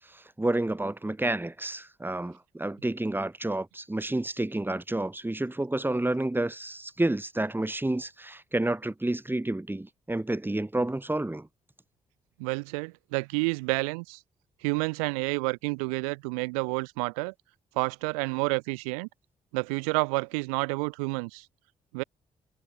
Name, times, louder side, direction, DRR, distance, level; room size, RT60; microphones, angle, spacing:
voice 1, 0.4-11.5, right 2 dB, 10° right, 2.7 m, -30 dB
voice 2, 12.4-14.2 14.6-17.3 17.8-19.1 19.5-21.5 21.9-22.0, right 31 dB, 75° right, 3.5 m, -29 dB
figure-of-eight pair, 40°, 18 cm